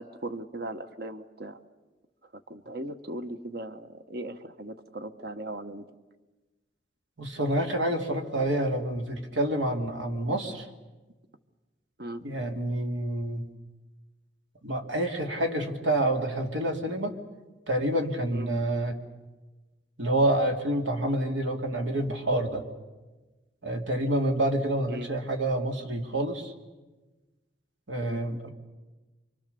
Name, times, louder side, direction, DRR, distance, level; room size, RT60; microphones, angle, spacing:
voice 1, 0.0-1.6 2.5-5.8 12.0-12.2 18.3-18.5 24.9-25.1 28.1-28.2, right 1 dB, 60° right, 9 dB, 1.3 m, -38 dB
voice 2, 7.2-10.7 12.2-13.5 14.6-17.2 17.7-19.0 20.0-22.7 23.6-26.5 27.9-28.5, right 1 dB, 90° right, 3 dB, 2.8 m, -28 dB
29.5 x 24.5 x 6.9 m, 1.2 s
head